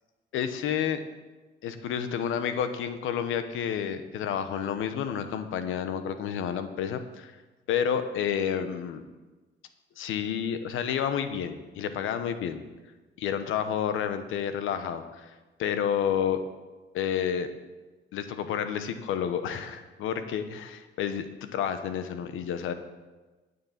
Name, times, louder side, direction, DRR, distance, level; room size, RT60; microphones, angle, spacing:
voice 1, 0.3-1.0 1.6-7.3 7.7-9.0 10.0-12.6 13.2-15.3 15.6-16.4 16.9-17.5 18.1-22.7, left 8 dB, 85° left, 9 dB, 1.0 m, -30 dB
9.7 x 6.8 x 7.5 m, 1.2 s
cardioid pair, 90°, 20 cm